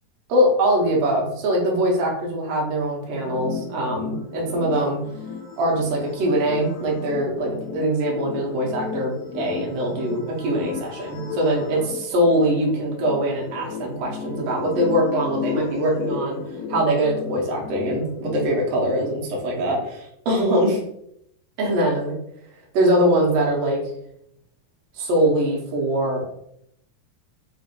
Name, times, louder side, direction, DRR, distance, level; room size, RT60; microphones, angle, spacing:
voice 1, 0.3-5.0 5.6-11.8 12.1-16.4 16.7-20.8 21.6-22.2 22.7-23.8 24.9-26.3, right 1 dB, 75° right, -3 dB, 1.4 m, -22 dB
sound 1, 3.1-18.5, left 5 dB, 85° left, 1.9 m, -34 dB
6.0 x 3.0 x 2.5 m, 0.75 s
omnidirectional pair, 4.4 m